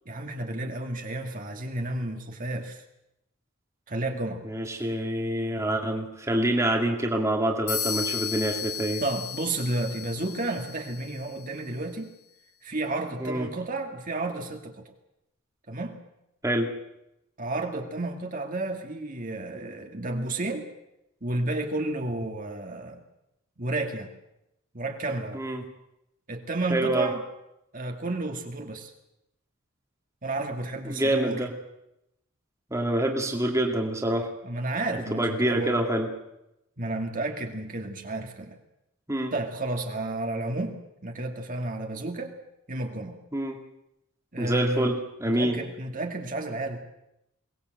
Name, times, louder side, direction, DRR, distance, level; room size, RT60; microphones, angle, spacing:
voice 1, 0.1-2.8 3.9-4.4 9.0-12.1 12.6-14.8 15.7-16.0 17.4-20.7 21.2-23.0 23.6-24.1 24.7-25.4 26.3-27.2 27.7-28.9 30.2-31.4 34.4-35.8 36.8-38.6 39.3-40.8 41.0-42.3 42.7-43.2 44.3-44.9 45.2-46.8, right 2 dB, 40° right, 3 dB, 2.3 m, -31 dB
voice 2, 4.4-9.0 13.2-13.5 16.4-16.7 25.3-25.6 26.7-27.1 30.8-31.5 32.7-34.3 35.1-36.1 39.1-39.3 43.3-43.6 44.4-45.6, right 1 dB, 15° right, 1 dB, 2.3 m, -26 dB
sound 1, 7.7-11.4, left 8 dB, 80° left, 5.1 m, -34 dB
22.5 x 19.0 x 7.9 m, 0.86 s
head